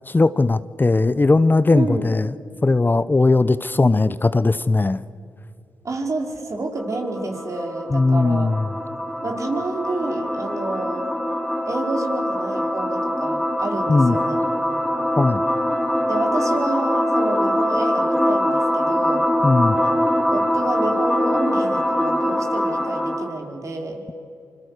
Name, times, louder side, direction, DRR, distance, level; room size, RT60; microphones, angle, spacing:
voice 1, 0.1-2.3 2.6-5.0 7.9-8.7 13.9-14.2 15.2-15.4 19.4-19.8, left 3 dB, 30° left, 15 dB, 0.8 m, -18 dB
voice 2, 5.8-8.6 9.2-11.1 11.6-14.4 16.1-19.2 19.8-24.0, right 2 dB, 50° right, 2 dB, 4.7 m, -29 dB
sound 1, 6.8-23.4, equal, 5° left, 2.6 m, -23 dB
26.5 x 25.5 x 6.7 m, 2.5 s
supercardioid pair, 50°, 7 cm